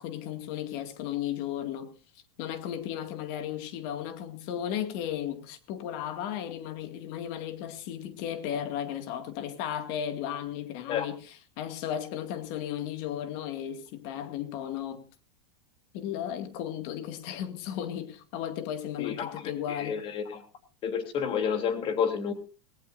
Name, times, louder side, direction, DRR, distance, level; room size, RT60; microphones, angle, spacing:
voice 1, 0.0-1.9 2.4-15.1 15.9-20.1, left 10 dB, 55° left, 2.2 m, -35 dB
voice 2, 19.0-19.3 19.7-20.4 20.8-22.3, left 7 dB, 40° left, 3.2 m, -30 dB
18.5 x 17.5 x 2.6 m
supercardioid pair, 125°, 14 cm